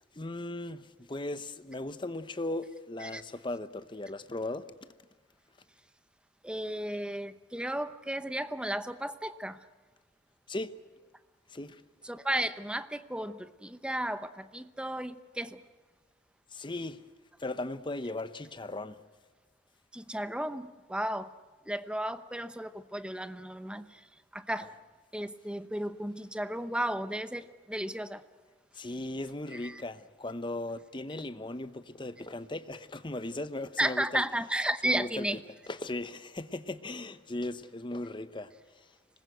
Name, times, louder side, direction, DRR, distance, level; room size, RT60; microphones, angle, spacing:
voice 1, 0.1-4.6 10.5-10.7 11.5-11.8 16.5-17.0 17.4-19.0 28.7-34.2 34.8-35.4 35.7-38.9, left 2 dB, 25° left, 0.9 m, -37 dB
voice 2, 6.4-9.6 12.0-15.6 19.9-21.3 21.7-24.0 24.3-24.7 25.1-28.2 29.5-29.8 33.8-35.4, right 1 dB, 5° right, 0.8 m, -34 dB
25.5 x 20.5 x 8.0 m
head